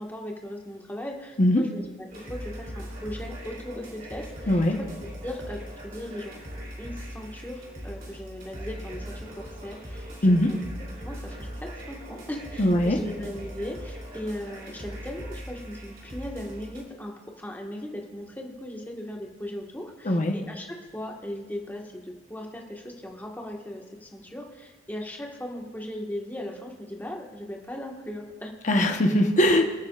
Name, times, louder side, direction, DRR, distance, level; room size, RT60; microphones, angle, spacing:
voice 1, 0.0-4.9 5.2-6.4 6.8-10.7 11.0-28.5, left 1 dB, 10° left, 0 dB, 1.5 m, -38 dB
sound 1, 2.1-16.8, equal, 55° right, 3.2 m, -40 dB
voice 2, 4.5-4.8 10.2-10.5 12.6-13.0 20.0-20.4 28.7-29.6, left 1 dB, 45° left, 3 dB, 1.1 m, -20 dB
26.5 x 8.8 x 2.4 m, 1.4 s
head